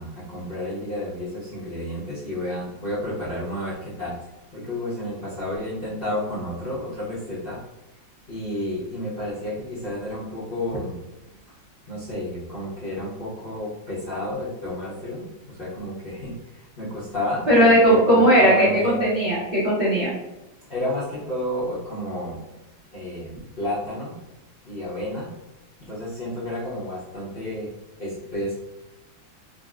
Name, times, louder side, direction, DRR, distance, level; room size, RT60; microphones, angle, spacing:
voice 1, 0.0-4.1 4.5-7.6 8.3-11.0 11.9-19.0 20.7-22.4 22.9-23.3 23.6-24.2 24.6-25.3 25.9-27.7 28.0-28.5, left 1 dB, 45° left, -10 dB, 0.7 m, -31 dB
voice 2, 17.5-20.1, equal, 75° right, -8 dB, 0.4 m, -17 dB
3.7 x 2.0 x 2.4 m, 0.99 s
omnidirectional pair, 2.0 m